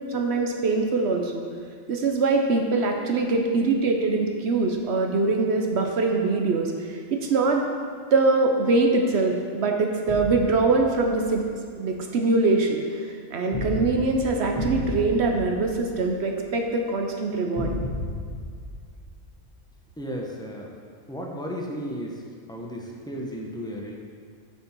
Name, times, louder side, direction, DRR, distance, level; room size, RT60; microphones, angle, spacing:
voice 1, 0.1-1.4 1.9-7.6 8.1-11.4 11.8-12.8 13.3-17.7, right 3 dB, 60° right, 2 dB, 0.9 m, -23 dB
sound 1, 10.1-11.5 13.5-16.5 17.5-19.7, left 2 dB, 25° left, 1.1 m, -33 dB
voice 2, 20.0-20.7 21.1-22.2 22.5-23.9, equal, 5° left, -1 dB, 0.7 m, -34 dB
7.1 x 6.3 x 4.5 m, 2.1 s
omnidirectional pair, 1.4 m